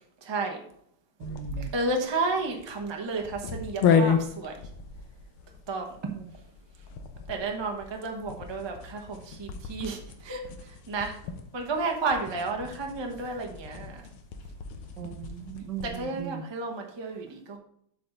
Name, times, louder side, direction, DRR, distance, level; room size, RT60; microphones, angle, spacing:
voice 1, 0.2-0.6 1.7-4.5 5.7-6.0 7.3-11.2 11.5-14.0 15.8-17.6, right 3 dB, 25° right, 2 dB, 0.6 m, -32 dB
sound 1, 1.2-16.1, left 6 dB, 90° left, 1.7 m, -33 dB
voice 2, 1.2-1.7 6.0-6.3 15.0-16.4, right 10 dB, 70° right, 7 dB, 1.0 m, -38 dB
8.1 x 5.6 x 3.9 m, 0.69 s
omnidirectional pair, 2.3 m